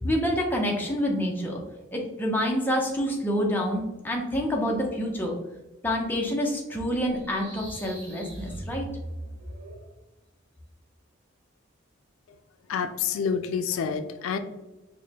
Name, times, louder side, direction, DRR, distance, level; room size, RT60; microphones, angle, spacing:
voice 1, 0.0-1.6 1.9-5.3 5.8-8.9, equal, 10° left, -1 dB, 0.5 m, -27 dB
sound 1, 7.1-9.9, equal, 60° right, 1.1 m, -40 dB
voice 2, 12.7-14.4, left 6 dB, 80° left, 9 dB, 0.3 m, -28 dB
4.7 x 2.1 x 2.8 m, 1.1 s
head